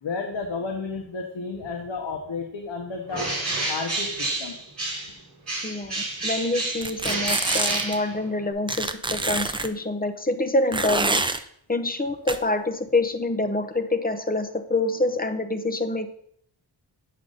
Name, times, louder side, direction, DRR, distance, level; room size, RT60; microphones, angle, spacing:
voice 1, 0.0-3.3 3.7-4.6, left 4 dB, 75° left, 2 dB, 1.1 m, -32 dB
Bird, 3.1-5.2 5.5-8.5, right 2 dB, 35° right, 4.0 m, -29 dB
voice 2, 5.6-16.1, left 2 dB, 20° left, 8 dB, 0.7 m, -26 dB
sound 1, 6.8-8.0 8.7-9.7 10.7-11.4 12.3-12.4, right 2 dB, 10° right, 0.3 m, -26 dB
8.4 x 6.3 x 3.9 m, 0.66 s
wide cardioid pair, 130°, 45 cm